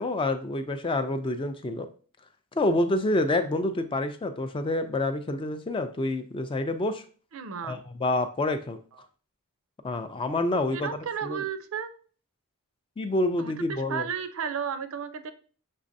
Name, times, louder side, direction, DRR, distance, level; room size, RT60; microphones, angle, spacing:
voice 1, 0.0-1.9 2.5-7.0 7.6-8.8 9.8-10.9 11.2-11.4 13.0-14.1, left 2 dB, 25° left, 9 dB, 0.3 m, -27 dB
voice 2, 7.3-7.8 10.7-11.9 13.4-15.3, right 7 dB, 65° right, 10 dB, 0.5 m, -33 dB
6.3 x 3.2 x 2.6 m, 0.41 s
head